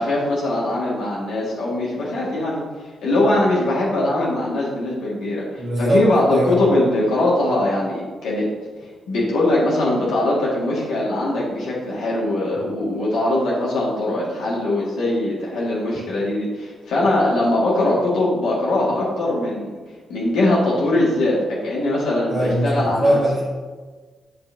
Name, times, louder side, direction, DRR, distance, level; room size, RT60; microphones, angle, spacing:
voice 1, 0.0-2.6 3.0-8.5 9.1-19.8 20.1-23.2, left 1 dB, 90° left, -6 dB, 1.8 m, -21 dB
voice 2, 5.6-6.0 6.3-6.5 22.3-23.5, right 1 dB, 25° right, -7 dB, 1.5 m, -20 dB
8.5 x 5.6 x 2.7 m, 1.4 s
cardioid pair, 125°, 0 cm